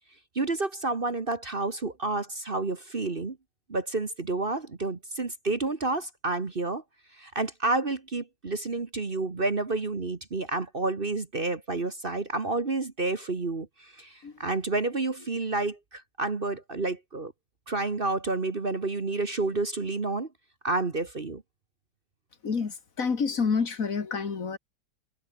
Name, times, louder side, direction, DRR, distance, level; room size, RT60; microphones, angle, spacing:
voice 1, 0.3-3.4 3.7-6.8 7.2-13.7 14.0-14.1 14.4-17.3 17.7-20.3 20.6-21.4, right 3 dB, 35° right, 1.6 m, -29 dB
voice 2, 22.4-24.6, left 5 dB, 50° left, 2.2 m, -28 dB
omnidirectional pair, 1.9 m